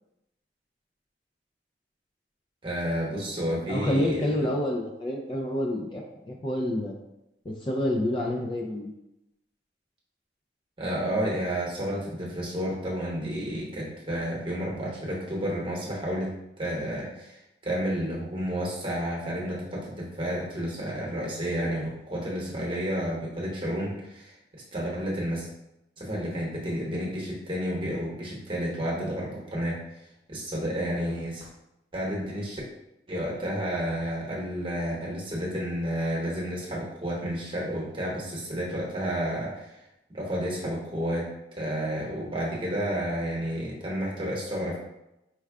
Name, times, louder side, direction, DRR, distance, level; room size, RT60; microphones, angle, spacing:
voice 1, 2.6-4.3 10.8-16.3 16.6-17.4 17.6-25.5 26.0-29.8 30.3-31.5 31.9-32.6 33.1-39.8 40.1-41.3 41.6-44.8, equal, 30° right, -4 dB, 1.0 m, -31 dB
voice 2, 3.7-7.0 7.5-8.9, left 1 dB, 25° left, -1 dB, 0.4 m, -28 dB
4.5 x 2.2 x 3.5 m, 0.89 s
head